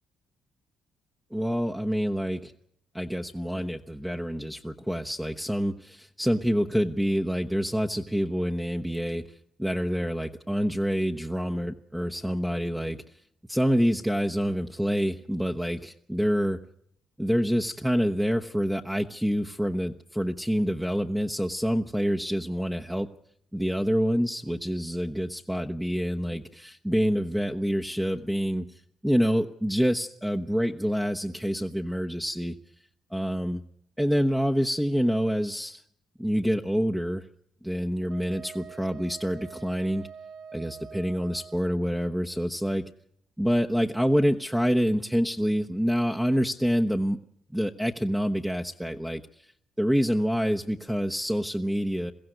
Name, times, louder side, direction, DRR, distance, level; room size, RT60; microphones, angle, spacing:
voice 1, 1.3-2.5 2.9-9.2 9.6-13.0 13.5-16.6 17.2-23.1 23.5-28.7 29.0-32.5 33.1-33.6 34.0-35.8 36.2-37.3 37.6-40.1 40.5-42.8 43.4-47.2 47.5-49.2 49.8-52.1, equal, 5° right, 3 dB, 1.0 m, -27 dB
Wind instrument woodwind instrument, 38.1-41.7, right 6 dB, 70° right, 1.6 m, -45 dB
22.0 x 15.5 x 8.0 m, 0.69 s
cardioid pair, 90°, 0 cm